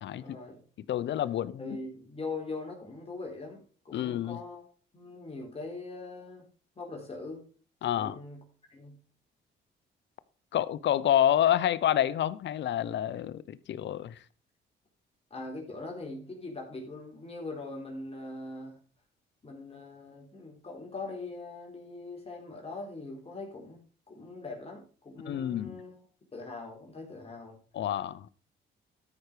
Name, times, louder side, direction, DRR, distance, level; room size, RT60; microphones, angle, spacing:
voice 1, 0.2-0.9 1.3-6.5 6.8-7.5 7.9-8.4 8.7-9.0 15.3-18.8 19.4-23.8 24.1-26.1 26.3-27.6, left 3 dB, 30° left, 3.9 m, -42 dB
voice 2, 0.9-1.8 3.9-4.4 7.8-8.2 10.5-14.2 25.3-25.8 27.7-28.3, left 11 dB, 65° left, 0.8 m, -28 dB
13.0 x 6.1 x 5.0 m
cardioid pair, 90°, 20 cm